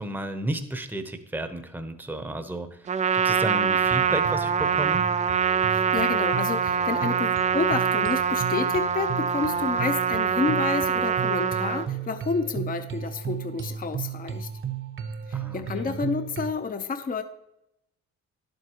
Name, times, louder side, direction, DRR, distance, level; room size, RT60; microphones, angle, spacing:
voice 1, 0.0-5.0 15.3-16.0, right 1 dB, 5° right, 8 dB, 0.8 m, -33 dB
Trumpet, 2.9-11.9, right 7 dB, 25° right, 0.4 m, -24 dB
sound 1, 3.8-16.5, right 6 dB, 45° right, 0.9 m, -35 dB
voice 2, 5.7-14.5 15.3-17.2, left 5 dB, 30° left, 9 dB, 0.6 m, -30 dB
11.0 x 7.9 x 2.9 m, 0.86 s
cardioid pair, 90°, 30 cm